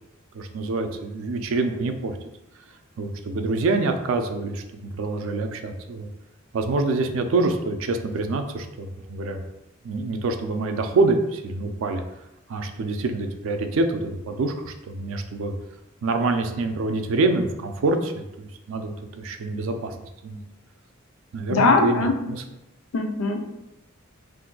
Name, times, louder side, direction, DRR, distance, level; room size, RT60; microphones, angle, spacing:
voice 1, 0.3-2.2 3.0-6.1 6.5-9.4 9.8-12.0 12.5-15.5 16.0-20.0 20.2-20.4 21.3-22.4, right 3 dB, 70° right, 6 dB, 0.4 m, -26 dB
voice 2, 21.5-22.1 22.9-23.4, left 3 dB, 85° left, 4 dB, 0.4 m, -20 dB
2.6 x 2.2 x 3.8 m, 0.94 s
head